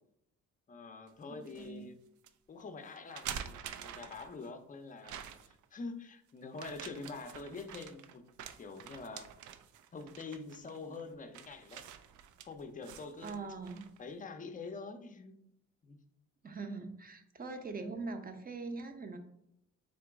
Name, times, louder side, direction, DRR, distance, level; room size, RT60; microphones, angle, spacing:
voice 1, 0.7-2.0 2.5-8.2 8.6-9.3 9.9-11.8 12.4-13.6 14.0-15.4 15.8-16.0, left 4 dB, 25° left, 8 dB, 0.5 m, -45 dB
sound 1, 1.1-1.7 2.2-2.3 3.0-4.5 5.0-5.6 6.5-14.0, right 9 dB, 75° right, 0.5 m, -47 dB
voice 2, 1.3-1.9 10.8-11.1 13.2-13.9 16.4-19.2, right 3 dB, 30° right, 7 dB, 0.6 m, -42 dB
3.9 x 2.9 x 3.5 m, 0.77 s
cardioid pair, 90°, 30 cm